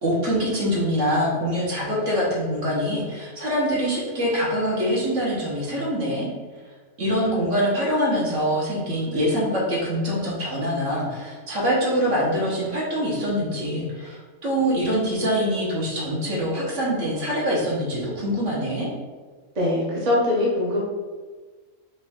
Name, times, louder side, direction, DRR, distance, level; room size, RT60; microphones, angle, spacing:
voice 1, 0.0-6.3 7.0-18.9, equal, 60° right, -5 dB, 1.5 m, -24 dB
voice 2, 19.6-20.8, left 1 dB, 35° right, -5 dB, 0.9 m, -22 dB
5.1 x 2.5 x 3.5 m, 1.4 s
omnidirectional pair, 1.5 m